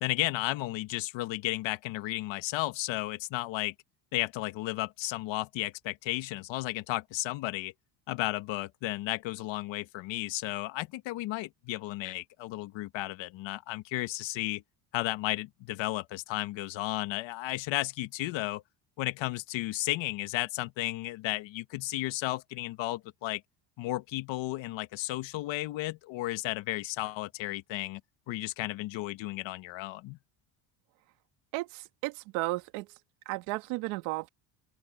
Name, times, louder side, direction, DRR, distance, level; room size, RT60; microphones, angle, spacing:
voice 1, 0.0-3.7 4.1-7.7 8.1-14.6 14.9-18.6 19.0-23.4 23.8-28.0 28.3-30.2, left 17 dB, 65° left, 1.6 m, -33 dB
voice 2, 31.5-32.9 33.3-34.3, right 22 dB, 80° right, 1.9 m, -34 dB
open air
cardioid pair, 120°, 49 cm